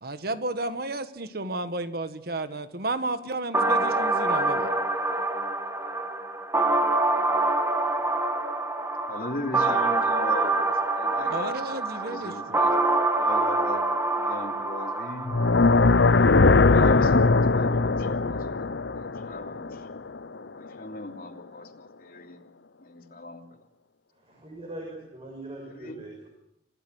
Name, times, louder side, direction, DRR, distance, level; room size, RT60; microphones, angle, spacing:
voice 1, 0.0-4.7 11.3-12.6, right 2 dB, 60° right, 10 dB, 1.6 m, -32 dB
sound 1, 3.5-15.5, right 2 dB, 15° right, 1.6 m, -25 dB
voice 2, 9.1-11.6 12.0-12.7 13.0-13.8 14.2-15.4 16.6-18.7 19.2-19.9 20.6-22.4 22.8-23.4 25.6-26.0, left 2 dB, 55° left, 3 dB, 3.0 m, -38 dB
sound 2, 15.2-20.4, left 3 dB, 90° left, 0.8 m, -20 dB
voice 3, 24.2-26.3, right 1 dB, 35° right, 0 dB, 6.4 m, -41 dB
28.0 x 16.0 x 8.0 m, 0.79 s
head